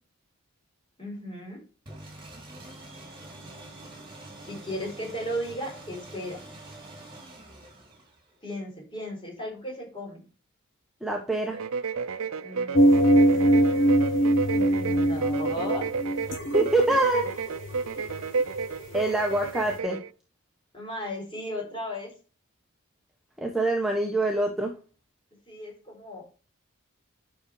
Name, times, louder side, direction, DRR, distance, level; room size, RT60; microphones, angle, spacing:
voice 1, 1.0-1.6 4.4-6.4 8.4-10.2 12.4-15.9 20.7-22.1 25.5-26.2, equal, 25° left, 0 dB, 4.2 m, -36 dB
sound 1, 1.9-8.4, right 2 dB, 20° right, 2.9 m, -45 dB
voice 2, 11.0-11.6 16.5-17.2 18.9-20.0 23.4-24.7, right 2 dB, ahead, 0 dB, 1.1 m, -25 dB
sound 2, 11.5-20.1, right 5 dB, 75° right, 0.6 m, -31 dB
sound 3, 12.7-19.8, right 1 dB, 60° left, 1.2 m, -23 dB
9.7 x 6.2 x 4.8 m, 0.34 s
head